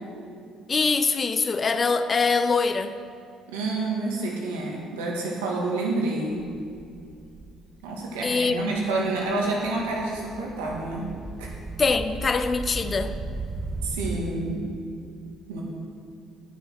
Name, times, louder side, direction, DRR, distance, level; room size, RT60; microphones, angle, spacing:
voice 1, 0.7-3.0 8.2-8.5 11.8-13.2, left 4 dB, 35° left, 0.6 m, -23 dB
voice 2, 3.5-6.4 7.8-11.0 11.4-11.5 13.8-14.6 15.5-15.6, right 2 dB, 85° right, 1.8 m, -28 dB
sound 1, 6.4-7.5 8.2-8.3 8.6-14.2, right 3 dB, 30° right, 0.9 m, -36 dB
9.7 x 6.3 x 6.3 m
hypercardioid pair, 60°, 0 cm